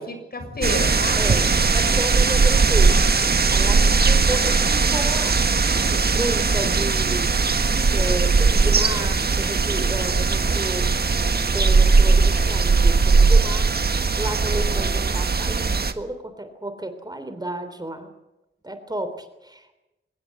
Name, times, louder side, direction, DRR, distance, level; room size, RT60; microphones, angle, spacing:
voice 1, 0.0-1.8 3.7-4.2, left 2 dB, 50° left, 7 dB, 6.5 m, -32 dB
sound 1, 0.6-15.9, right 4 dB, 50° right, 1.6 m, -19 dB
voice 2, 1.2-3.0 3.5-5.4 5.9-7.3 7.9-10.9 11.5-18.1 18.6-19.7, right 1 dB, 20° right, 9 dB, 3.3 m, -32 dB
24.0 x 20.0 x 8.3 m, 0.95 s
wide cardioid pair, 115°, 20 cm